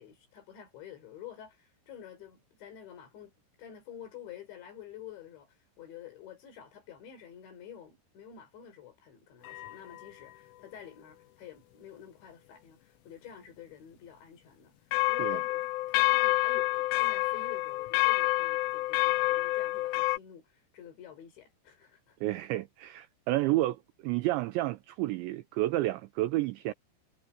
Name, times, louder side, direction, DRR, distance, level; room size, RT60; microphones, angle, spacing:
voice 1, 0.0-3.3 3.6-22.2, left 9 dB, 65° left, 6.7 m, -49 dB
sound 1, 9.5-10.1 14.9-20.2, left 19 dB, 80° left, 3.0 m, -28 dB
voice 2, 22.2-26.7, right 16 dB, 75° right, 2.9 m, -30 dB
omnidirectional pair, 5.8 m